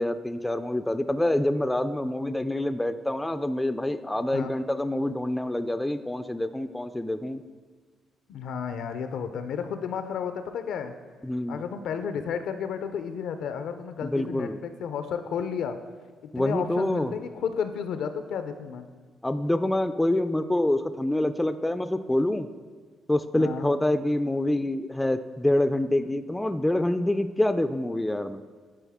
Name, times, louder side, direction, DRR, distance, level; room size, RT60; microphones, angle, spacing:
voice 1, 0.0-7.4 11.2-11.6 14.0-14.6 16.3-17.1 19.2-22.5 23.1-28.4, left 1 dB, 10° left, 10 dB, 0.3 m, -26 dB
voice 2, 8.3-10.9 11.5-15.8 16.4-18.9 23.3-23.7, left 7 dB, 75° left, 9 dB, 0.5 m, -32 dB
11.0 x 4.1 x 3.5 m, 1.5 s
cardioid pair, 90°, 0 cm